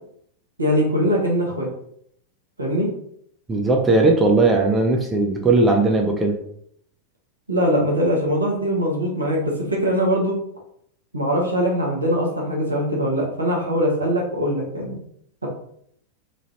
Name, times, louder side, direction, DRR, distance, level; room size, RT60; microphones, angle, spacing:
voice 1, 0.6-1.7 2.6-2.9 7.5-10.3 11.1-14.9, equal, 80° right, -1 dB, 0.8 m, -22 dB
voice 2, 3.5-6.4, right 3 dB, 15° right, 2 dB, 0.5 m, -18 dB
3.0 x 2.4 x 2.8 m, 0.68 s
figure-of-eight pair, 90°, 0 cm